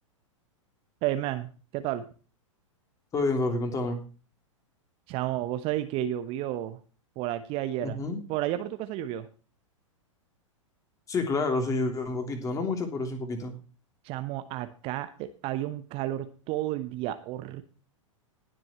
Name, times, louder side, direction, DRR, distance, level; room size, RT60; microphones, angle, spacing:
voice 1, 1.0-2.0 5.1-6.8 7.2-8.0 8.3-9.3 14.0-17.6, right 13 dB, 35° right, 10 dB, 1.1 m, -32 dB
voice 2, 3.1-4.0 7.8-8.2 11.1-13.5, left 3 dB, 20° left, 4 dB, 3.2 m, -29 dB
19.5 x 7.6 x 3.1 m, 0.35 s
figure-of-eight pair, 100°, 17 cm